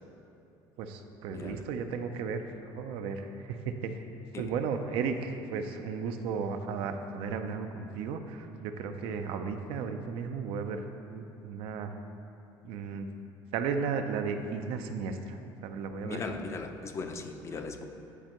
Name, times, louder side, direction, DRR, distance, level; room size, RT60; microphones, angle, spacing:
voice 1, 0.8-4.0 4.4-10.8 11.1-11.9 12.6-13.1 13.5-16.3, right 5 dB, 70° right, 7 dB, 0.5 m, -34 dB
voice 2, 1.3-1.6 4.3-4.5 16.1-17.8, left 4 dB, 30° left, 6 dB, 0.4 m, -38 dB
10.0 x 4.3 x 3.0 m, 2.8 s
cardioid pair, 130°, 10 cm